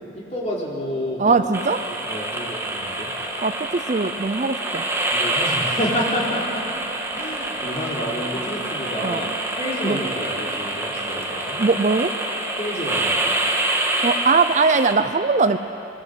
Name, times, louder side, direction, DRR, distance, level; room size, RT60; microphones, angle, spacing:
voice 1, 0.1-1.3 1.9-3.1 5.1-6.6 7.1-9.3 9.6-11.6 12.6-13.2, equal, 35° left, -4 dB, 4.3 m, -29 dB
voice 2, 1.2-1.8 3.4-4.9 9.0-9.2 9.8-10.0 11.6-12.1 14.0-15.6, right 4 dB, 40° right, 10 dB, 0.6 m, -20 dB
sound 1, 1.5-14.9, right 1 dB, 15° right, 1.8 m, -26 dB
22.0 x 20.0 x 8.1 m, 2.8 s
head